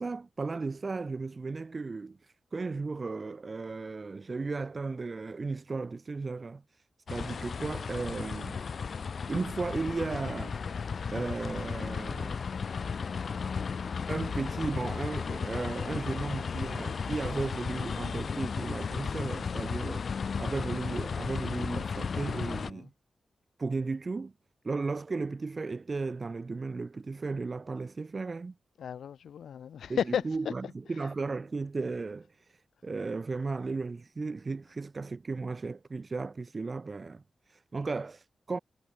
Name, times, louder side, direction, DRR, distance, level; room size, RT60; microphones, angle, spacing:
voice 1, 0.0-8.6 9.3-10.6 11.1-12.4 14.1-22.9 23.6-24.3 24.6-28.5 29.9-38.6, right 4 dB, 45° right, 7.4 m, -35 dB
sound 1, 7.1-22.7, left 5 dB, 65° left, 2.7 m, -34 dB
voice 2, 28.8-30.5 30.9-31.1, left 8 dB, 90° left, 2.0 m, -34 dB
cardioid pair, 60°, 0 cm